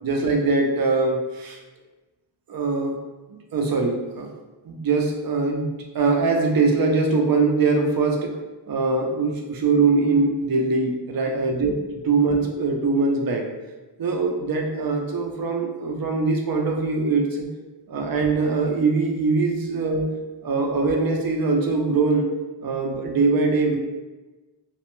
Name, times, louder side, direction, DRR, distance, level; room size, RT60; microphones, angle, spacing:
voice 1, 0.0-1.6 2.5-3.0 3.5-4.3 4.7-8.3 8.7-11.7 12.0-13.5 14.0-17.5 17.9-20.1 20.4-22.2 22.6-23.8, right 3 dB, 55° right, 2 dB, 0.5 m, -22 dB
2.6 x 2.1 x 3.0 m, 1.2 s
wide cardioid pair, 100°, 45 cm